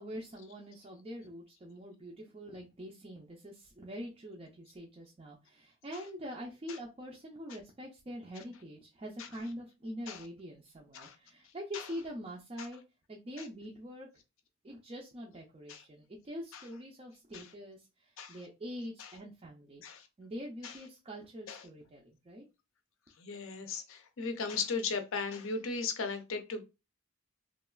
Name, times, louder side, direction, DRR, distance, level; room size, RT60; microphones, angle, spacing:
voice 1, 0.0-12.8 13.1-14.1 14.6-19.8 20.2-22.4, equal, 25° right, 0.4 m, -44 dB
voice 2, 23.2-26.6, left 4 dB, 70° left, 0.5 m, -37 dB
3.0 x 2.3 x 2.2 m
head